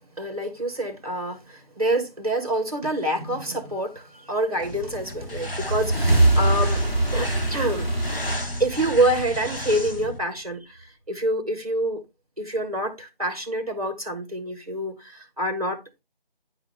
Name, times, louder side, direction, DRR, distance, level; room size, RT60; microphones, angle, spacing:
voice 1, 0.2-7.9 8.6-12.0 12.4-16.0, right 1 dB, 40° right, 1.6 m, -27 dB
sound 1, 4.6-10.2, left 1 dB, 70° left, 2.1 m, -35 dB
sound 2, 5.3-9.9, right 2 dB, 15° right, 1.9 m, -23 dB
9.9 x 4.8 x 3.3 m
figure-of-eight pair, 175°, 30 cm